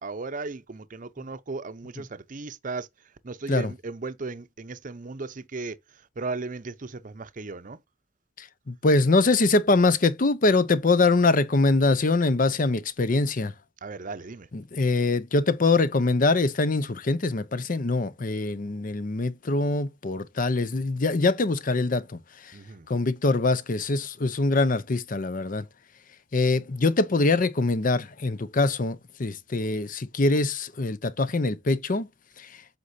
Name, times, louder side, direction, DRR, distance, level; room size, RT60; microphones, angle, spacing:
voice 1, 0.0-2.9 3.2-7.8 13.8-14.5 22.5-22.9, right 3 dB, 45° right, 0.7 m, -36 dB
voice 2, 8.4-13.5 14.5-22.2 22.9-25.7 26.3-32.1 32.4-32.5, left 3 dB, 45° left, 0.7 m, -23 dB
8.1 x 5.3 x 2.7 m
head